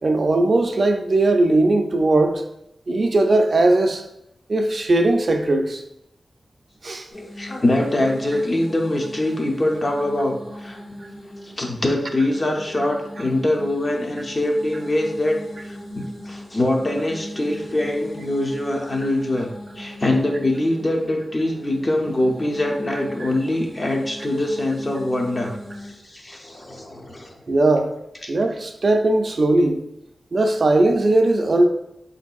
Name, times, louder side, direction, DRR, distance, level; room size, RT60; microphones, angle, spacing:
voice 1, 0.0-2.4 2.9-4.0 4.5-5.8 6.8-7.1 22.9-23.3 27.5-27.9 28.3-29.8 30.3-31.7, right 2 dB, 55° right, 5 dB, 0.3 m, -19 dB
sound 1, 7.1-26.0, equal, 80° left, 1.1 m, -39 dB
voice 2, 7.1-10.8 11.4-15.8 16.2-19.5 19.8-27.4, left 1 dB, 40° left, 1 dB, 0.6 m, -23 dB
3.6 x 2.6 x 2.3 m, 0.81 s
wide cardioid pair, 70°, 0 cm